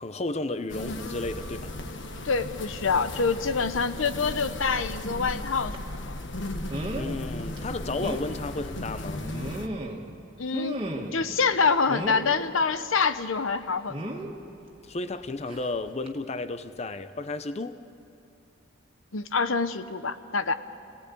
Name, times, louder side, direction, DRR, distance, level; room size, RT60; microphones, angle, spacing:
voice 1, 0.0-1.7 7.0-9.2 14.8-17.8, left 2 dB, 35° left, 11 dB, 0.6 m, -33 dB
sound 1, 0.7-9.7, left 1 dB, 65° left, 1.4 m, -36 dB
voice 2, 2.2-6.2 10.4-10.8 11.1-14.2 19.1-20.5, left 5 dB, 85° left, 12 dB, 0.9 m, -26 dB
sound 2, 5.7-5.9 6.7-7.1 7.6-7.7 8.0-8.3 9.2-10.1 10.5-11.3 11.9-12.3 13.9-14.3 15.5-15.7 16.0-16.1, right 1 dB, 25° right, 2.0 m, -34 dB
28.0 x 17.5 x 8.7 m, 2.8 s
head